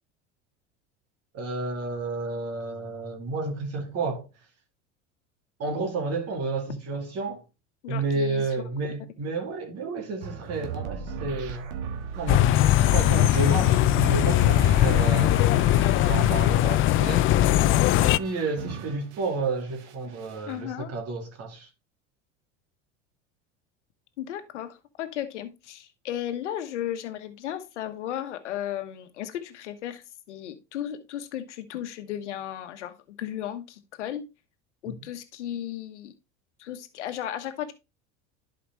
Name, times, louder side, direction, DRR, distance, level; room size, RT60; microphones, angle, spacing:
voice 1, 1.3-4.3 5.6-7.4 7.9-11.7 12.2-12.5 12.8-15.4 16.1-17.5 18.2-21.7 34.9-35.0, right 3 dB, 45° right, 2.6 m, -31 dB
voice 2, 7.8-8.4 20.5-20.9 24.2-34.2 34.8-36.1 36.6-37.7, left 11 dB, 85° left, 1.2 m, -35 dB
sound 1, 10.2-19.4 19.7-20.5, right 6 dB, 75° right, 1.4 m, -37 dB
sound 2, 12.3-18.2, left 14 dB, 40° left, 0.4 m, -20 dB
11.0 x 5.1 x 3.1 m
hypercardioid pair, 85°, 35 cm